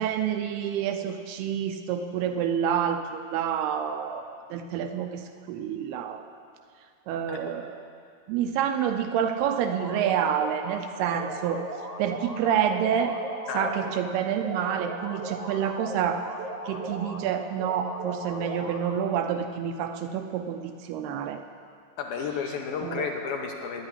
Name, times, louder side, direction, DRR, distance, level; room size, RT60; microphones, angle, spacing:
voice 1, 0.0-6.2 7.1-7.8 8.3-11.6 12.0-13.2 13.5-16.2 16.7-21.4 22.8-23.1, right 8 dB, 80° right, 6 dB, 2.5 m, -28 dB
sound 1, 9.6-10.8 11.2-14.0 14.4-17.2 17.6-19.2, right 2 dB, 60° right, 1.2 m, -37 dB
voice 2, 13.5-13.9 22.0-23.9, left 6 dB, 70° left, 2 dB, 2.5 m, -32 dB
9.9 x 9.4 x 9.8 m, 2.2 s
omnidirectional pair, 4.8 m